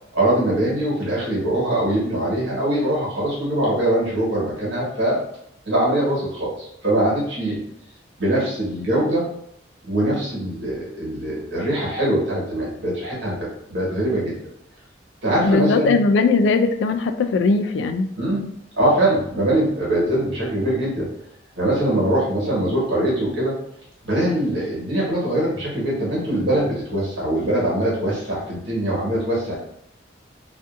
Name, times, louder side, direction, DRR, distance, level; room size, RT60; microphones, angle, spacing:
voice 1, 0.1-5.2 5.6-7.6 8.2-9.2 9.8-13.4 13.7-14.4 15.2-15.9 18.2-18.5 18.7-21.1 21.6-23.6 24.0-29.6, right 1 dB, 85° right, -5 dB, 1.3 m, -22 dB
voice 2, 15.4-18.1, left 3 dB, 80° left, 7 dB, 0.3 m, -19 dB
2.5 x 2.5 x 2.4 m, 0.73 s
head